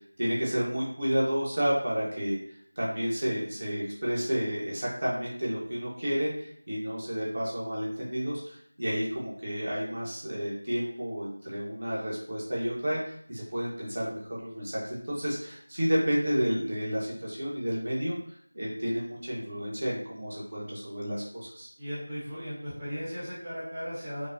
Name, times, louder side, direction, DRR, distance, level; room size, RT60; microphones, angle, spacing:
voice 1, 0.2-2.4 2.8-18.2 18.5-21.7, equal, 45° right, -5 dB, 1.3 m, -31 dB
voice 2, 21.8-24.3, equal, 10° right, -13 dB, 1.1 m, -36 dB
5.2 x 2.5 x 2.7 m, 0.63 s
figure-of-eight pair, 170°, 0 cm